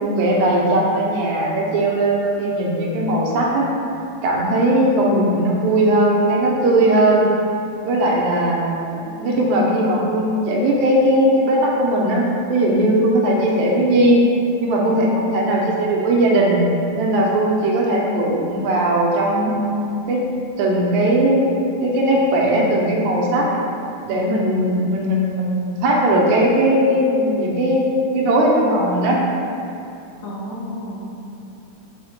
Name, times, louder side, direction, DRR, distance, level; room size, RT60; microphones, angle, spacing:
voice 1, 0.0-3.7 4.2-7.3 7.8-12.2 12.5-14.2 14.6-16.6 17.0-20.2 20.6-21.5 21.8-23.5 24.0-27.8 28.1-29.2, right 1 dB, 85° right, -2 dB, 2.0 m, -18 dB
voice 2, 4.7-5.7 30.2-31.1, left 1 dB, 80° left, -4 dB, 1.7 m, -27 dB
4.9 x 2.1 x 4.4 m, 2.7 s
omnidirectional pair, 3.4 m